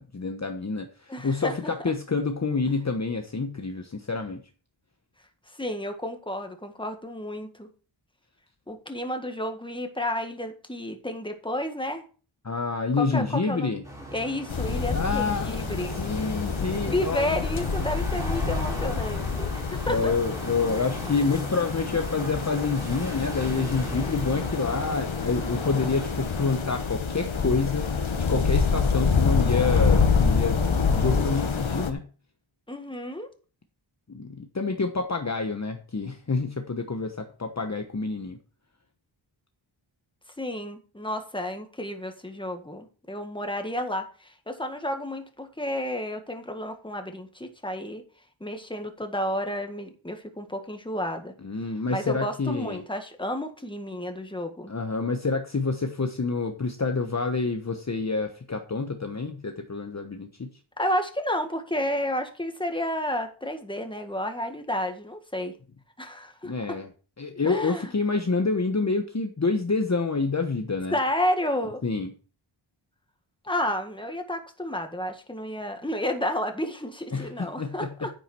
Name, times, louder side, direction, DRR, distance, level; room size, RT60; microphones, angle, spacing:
voice 1, 0.0-4.4 12.4-13.8 14.9-15.6 16.0-17.4 19.9-32.1 34.1-38.4 51.4-52.8 54.7-60.5 66.4-66.9 67.2-71.0 71.8-72.1 77.1-78.1, left 4 dB, 35° left, 5 dB, 1.1 m, -28 dB
voice 2, 1.1-1.7 5.6-7.7 8.7-12.0 13.0-13.8 14.1-15.9 16.8-20.1 32.7-33.3 40.4-48.0 48.4-51.3 51.9-54.7 60.8-65.5 66.0-66.8 67.4-67.9 70.9-71.8 73.4-78.1, left 1 dB, 10° left, 5 dB, 1.8 m, -31 dB
sound 1, 13.8-26.9, equal, 5° right, 3.7 m, -39 dB
sound 2, 14.5-31.9, left 5 dB, 75° left, 1.6 m, -27 dB
9.7 x 9.2 x 4.5 m, 0.37 s
wide cardioid pair, 90°, 48 cm